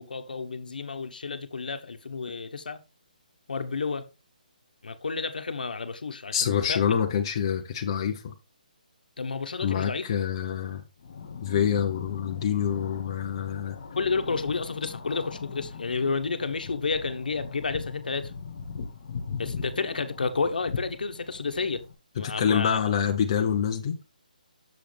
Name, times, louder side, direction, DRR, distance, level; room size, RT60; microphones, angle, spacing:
voice 1, 0.0-2.8 3.5-4.1 4.8-6.8 9.2-10.1 13.9-18.3 19.4-21.8 22.1-22.8, left 4 dB, 75° left, 1.1 m, -31 dB
voice 2, 6.3-8.3 9.6-10.8 11.4-13.8 22.2-24.0, left 8 dB, 30° left, 0.7 m, -26 dB
sound 1, 11.0-21.9, left 5 dB, 50° left, 1.4 m, -40 dB
6.9 x 6.4 x 3.3 m
hypercardioid pair, 170°, 5 cm